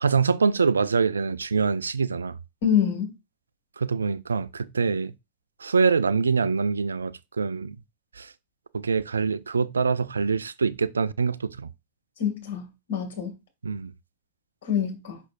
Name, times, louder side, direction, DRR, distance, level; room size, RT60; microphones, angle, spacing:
voice 1, 0.0-2.4 3.8-5.1 5.6-7.8 8.1-8.3 8.7-11.7 13.6-13.9, right 5 dB, 75° right, 0.3 m, -24 dB
voice 2, 2.6-3.1 12.2-13.3 14.6-15.2, left 8 dB, 60° left, 2.3 m, -26 dB
6.1 x 5.9 x 2.6 m
figure-of-eight pair, 90°, 0 cm